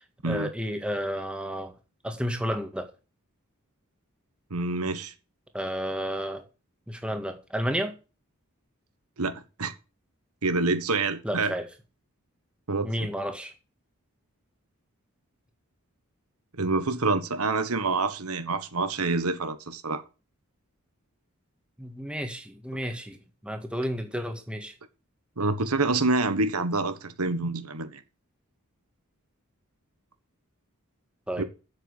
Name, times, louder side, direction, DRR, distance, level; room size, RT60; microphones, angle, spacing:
voice 1, 0.2-1.7 2.0-2.9 5.5-6.4 6.9-7.9 11.2-11.7 12.8-13.5 21.8-23.2 23.4-24.7 31.3-31.4, equal, 5° right, 1.8 m, -31 dB
voice 2, 4.5-5.1 9.2-9.7 10.4-11.5 12.7-13.1 16.6-20.0 25.4-28.0 31.4-31.5, right 3 dB, 85° right, 1.4 m, -27 dB
8.1 x 7.9 x 7.3 m
head